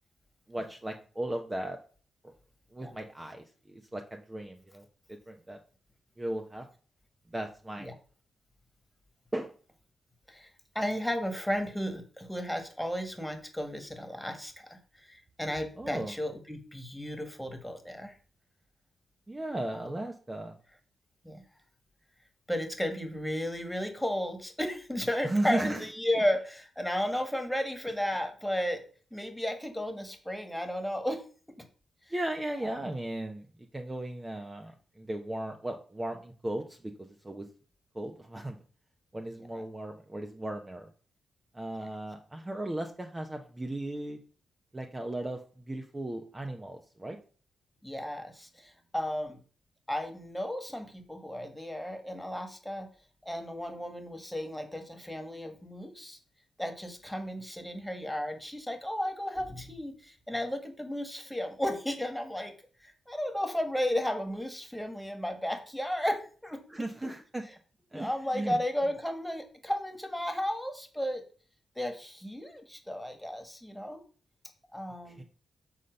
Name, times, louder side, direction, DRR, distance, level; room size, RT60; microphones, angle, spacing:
voice 1, 0.5-1.8 2.2-2.3 2.7-5.6 6.2-6.7 7.3-7.9 9.3-9.5 15.8-16.1 19.3-20.6 25.2-25.8 32.1-33.5 33.7-37.5 37.9-38.6 39.1-40.9 41.5-44.2 44.7-47.2 66.7-67.4 67.9-68.6 75.1-75.2, right 1 dB, 20° right, 4 dB, 1.0 m, -36 dB
voice 2, 10.8-18.2 19.7-19.9 21.2-21.4 22.5-28.8 29.1-31.2 31.6-31.7 32.1-32.2 39.5-39.6 41.8-41.9 47.8-49.4 49.9-52.9 53.2-56.2 56.6-62.5 62.8-66.8 67.9-71.2 71.8-74.0 74.7-75.2, left 1 dB, 5° left, 6 dB, 1.9 m, -34 dB
7.4 x 4.2 x 6.6 m, 0.40 s
cardioid pair, 70°, 0 cm